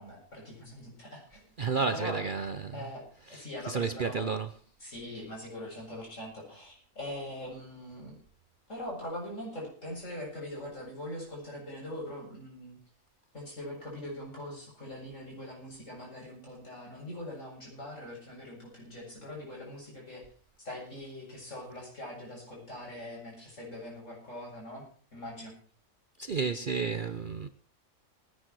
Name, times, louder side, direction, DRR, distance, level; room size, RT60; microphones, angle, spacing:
voice 1, 0.0-2.2 2.7-4.4 4.8-8.2 8.7-12.8 13.3-20.2 20.6-24.8 25.1-25.5, left 1 dB, 60° left, 8.2 m, -42 dB
voice 2, 1.6-2.7 3.3-4.5 26.2-27.5, right 5 dB, 45° right, 0.8 m, -31 dB
20.0 x 10.0 x 4.7 m
omnidirectional pair, 1.4 m